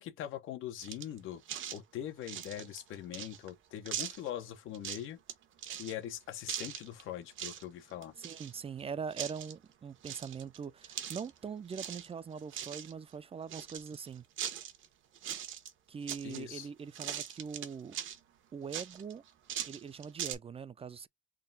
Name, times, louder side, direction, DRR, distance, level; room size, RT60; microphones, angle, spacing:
voice 1, 0.0-1.4 1.7-5.2 5.7-8.1 16.2-16.7, left 11 dB, 85° left, 0.9 m, -42 dB
sound 1, 0.8-1.2 1.5-1.8 2.2-3.5 3.9-4.3 4.7-5.3 5.6-5.9 6.5-7.0 7.3-7.6 7.9-8.8 9.1-9.5 10.0-11.4 11.7-12.1 12.4-12.9 13.5-14.9 15.1-15.7 16.1-16.7 16.9-18.2 18.7-20.3, right 10 dB, 80° right, 1.0 m, -40 dB
voice 2, 8.2-14.2 15.9-18.0 18.5-19.2 19.7-21.1, right 6 dB, 30° right, 0.4 m, -42 dB
3.7 x 2.2 x 3.9 m
cardioid pair, 90°, 20 cm